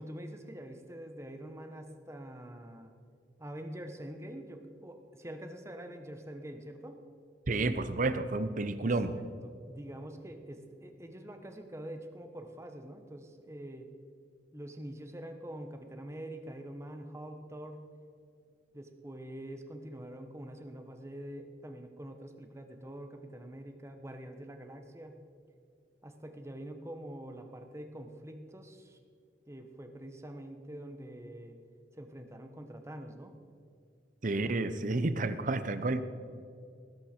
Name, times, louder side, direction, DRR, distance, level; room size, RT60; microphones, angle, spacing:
voice 1, 0.0-2.9 3.4-7.0 8.8-13.9 14.5-17.8 18.7-25.2 26.0-29.0 29.5-31.5 32.0-33.3, right 1 dB, 15° right, 6 dB, 1.1 m, -45 dB
voice 2, 7.5-9.1 34.2-36.0, right 2 dB, 45° right, 12 dB, 0.8 m, -30 dB
19.5 x 11.0 x 4.4 m, 2.4 s
head